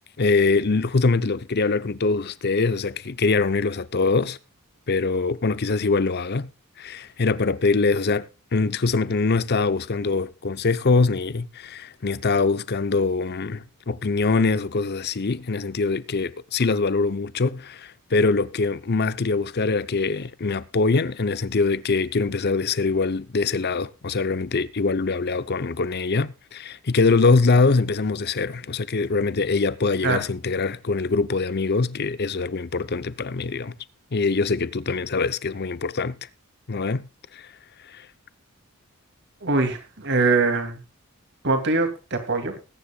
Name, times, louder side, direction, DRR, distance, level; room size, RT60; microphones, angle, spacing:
voice 1, 0.2-4.4 4.9-6.5 6.8-33.7 34.1-36.2 36.7-37.5 37.8-38.1, left 3 dB, 50° left, 0.7 m, -23 dB
voice 2, 39.4-40.8 41.4-42.5, right 3 dB, 55° right, 2.6 m, -22 dB
20.5 x 9.9 x 2.3 m
head